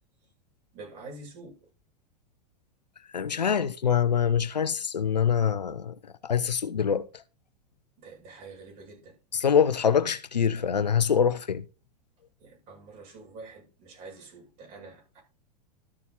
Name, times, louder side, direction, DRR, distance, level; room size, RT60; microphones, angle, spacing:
voice 1, 0.7-1.7 8.0-9.2 12.4-15.2, right 3 dB, 40° right, 7.8 m, -46 dB
voice 2, 3.1-5.9 6.2-7.1 9.3-11.6, left 7 dB, 85° left, 0.9 m, -24 dB
13.0 x 7.0 x 4.2 m
figure-of-eight pair, 95°, 21 cm